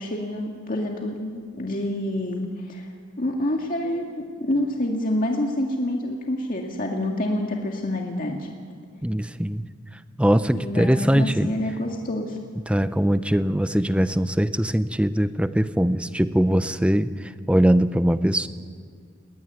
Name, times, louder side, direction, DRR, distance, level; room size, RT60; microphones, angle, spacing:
voice 1, 0.0-2.9 3.2-8.5 10.5-12.4, left 1 dB, 45° left, 1 dB, 2.1 m, -27 dB
voice 2, 9.0-9.7 10.2-11.6 12.7-18.5, equal, 5° right, 12 dB, 0.6 m, -21 dB
20.5 x 20.5 x 9.5 m, 2.1 s
head